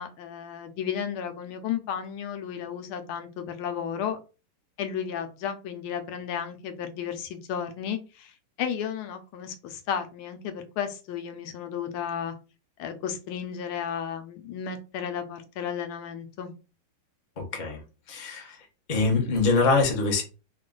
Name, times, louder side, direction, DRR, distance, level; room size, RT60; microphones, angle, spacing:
voice 1, 0.0-4.2 4.8-8.3 8.6-12.3 12.8-16.5, left 8 dB, 80° left, 1.5 m, -33 dB
voice 2, 17.4-17.8 18.1-18.6 18.9-20.2, left 3 dB, 65° left, 0.4 m, -24 dB
3.6 x 2.4 x 3.7 m
omnidirectional pair, 2.4 m